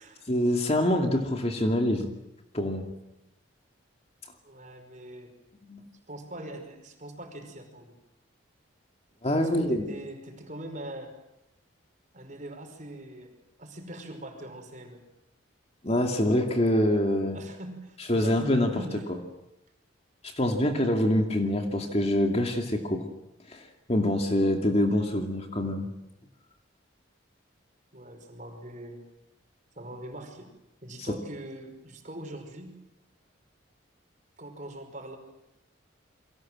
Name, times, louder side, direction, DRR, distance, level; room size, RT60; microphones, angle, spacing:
voice 1, 0.3-2.1 2.5-2.9 5.7-5.8 9.2-9.9 15.8-17.4 18.1-18.8 20.2-23.1 23.5-25.9, left 1 dB, 30° left, 4 dB, 2.5 m, -25 dB
voice 2, 4.4-5.3 6.1-8.0 9.3-11.1 12.1-13.3 13.6-15.0 17.3-19.0 27.9-29.1 29.8-30.5 30.8-32.8 34.4-35.2, right 1 dB, 35° right, 5 dB, 5.4 m, -42 dB
29.0 x 23.5 x 7.7 m, 0.86 s
head